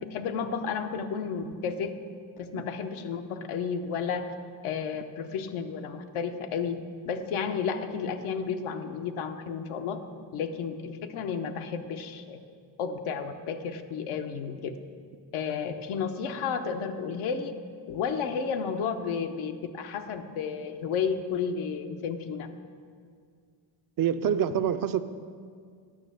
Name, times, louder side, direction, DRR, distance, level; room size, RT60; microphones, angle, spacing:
voice 1, 0.1-1.9 2.4-4.3 4.6-6.8 7.0-10.0 10.3-12.4 12.8-14.8 15.3-17.5 17.9-22.5, left 6 dB, 80° left, 7 dB, 0.9 m, -32 dB
voice 2, 24.0-25.0, right 9 dB, 45° right, 11 dB, 0.5 m, -25 dB
10.0 x 6.3 x 6.7 m, 2.1 s
cardioid pair, 95°, 48 cm